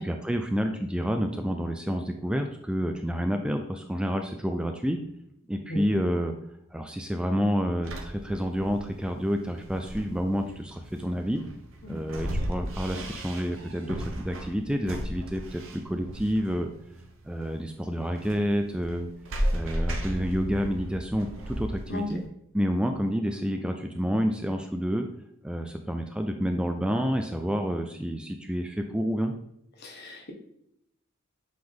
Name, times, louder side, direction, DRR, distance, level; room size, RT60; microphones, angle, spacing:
voice 1, 0.0-5.0 5.5-6.3 6.7-11.4 11.9-16.7 17.2-19.1 19.5-22.2 22.5-25.1 25.4-29.3, equal, 5° right, 5 dB, 0.3 m, -29 dB
sound 1, 7.8-22.2, equal, 65° right, 0.9 m, -35 dB
voice 2, 29.8-30.3, left 1 dB, 50° left, 1 dB, 1.2 m, -35 dB
7.7 x 3.9 x 3.6 m, 0.75 s
head